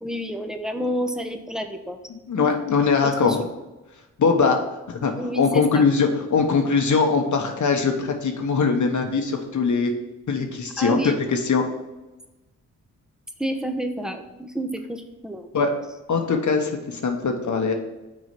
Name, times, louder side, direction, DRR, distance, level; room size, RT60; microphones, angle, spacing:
voice 1, 0.0-2.0 2.3-2.5 3.0-3.4 5.2-5.8 10.8-11.2 13.4-15.5, equal, ahead, 6 dB, 0.9 m, -29 dB
voice 2, 2.1-3.5 4.2-4.6 4.9-9.9 10.3-11.7 15.5-15.7 16.1-17.7, left 5 dB, 55° left, 3 dB, 1.2 m, -21 dB
6.4 x 3.9 x 5.9 m, 1.1 s
supercardioid pair, 45°, 37 cm